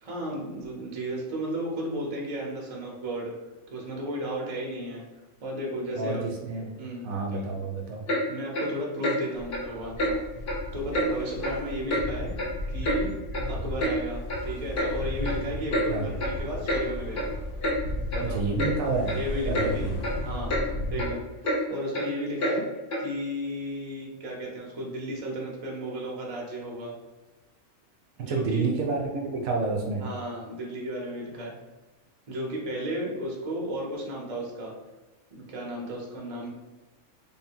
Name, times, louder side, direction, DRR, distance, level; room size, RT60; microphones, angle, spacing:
voice 1, 0.0-3.3 3.7-5.0 5.4-6.4 6.8-7.5 8.3-10.2 10.7-12.3 12.7-13.2 13.5-17.3 18.1-18.4 19.1-19.8 20.2-20.6 20.9-22.7 23.0-26.9 28.2-28.6 30.0-31.6 32.3-34.7 35.3-36.5, equal, 35° right, -2 dB, 0.6 m, -34 dB
voice 2, 6.0-6.7 7.0-8.0 15.7-16.0 18.2-19.2 19.5-20.0 28.3-30.1, right 3 dB, 70° right, 1 dB, 1.0 m, -29 dB
Clock, 8.1-8.2 8.5-8.7 9.0-9.2 9.5-9.6 10.0-10.1 10.5-10.6 10.9-11.1 11.4-11.6 11.9-12.0 12.4-13.0 13.3-13.4 13.8-13.9 14.3-14.4 14.8-14.9 15.2-15.4 15.7-15.9 16.2-16.4 16.7-16.8 17.1-17.3 17.6-17.8 18.1-18.2 18.6-18.7 19.1-19.2 19.5-19.7 20.0-20.2 20.5-20.7 20.9-21.1 21.4-21.6 21.9-22.1 22.4-22.6 22.9-23.0, equal, 45° left, 0.7 m, -28 dB
sound 1, 9.3-21.0, left 1 dB, 80° left, 1.2 m, -35 dB
3.6 x 2.1 x 4.3 m, 1.2 s
omnidirectional pair, 1.6 m